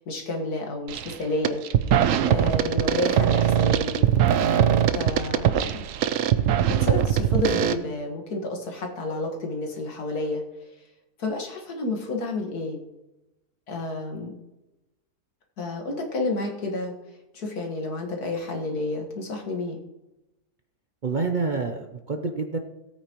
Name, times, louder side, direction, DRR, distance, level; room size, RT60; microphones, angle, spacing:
voice 1, 0.0-1.6 2.3-4.1 4.9-5.8 6.7-10.4 11.2-12.8 13.7-14.4 15.6-16.9 17.3-19.8, left 2 dB, 85° left, 2 dB, 2.1 m, -30 dB
sound 1, 0.9-1.1 1.4-7.7, right 10 dB, 70° right, 0.9 m, -21 dB
voice 2, 21.0-22.6, right 4 dB, 45° right, 4 dB, 0.6 m, -27 dB
17.5 x 8.7 x 3.0 m, 0.99 s
omnidirectional pair, 1.6 m